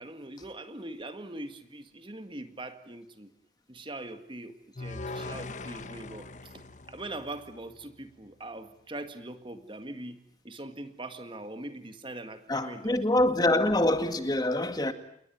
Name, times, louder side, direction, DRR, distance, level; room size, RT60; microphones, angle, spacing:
voice 1, 0.0-3.3 3.7-10.2 10.4-13.0 13.2-13.7, right 2 dB, 25° right, 1.9 m, -42 dB
sound 1, 4.8-8.0, left 3 dB, 40° left, 1.2 m, -41 dB
voice 2, 12.5-14.9, left 1 dB, 20° left, 2.0 m, -25 dB
28.5 x 21.5 x 9.2 m
head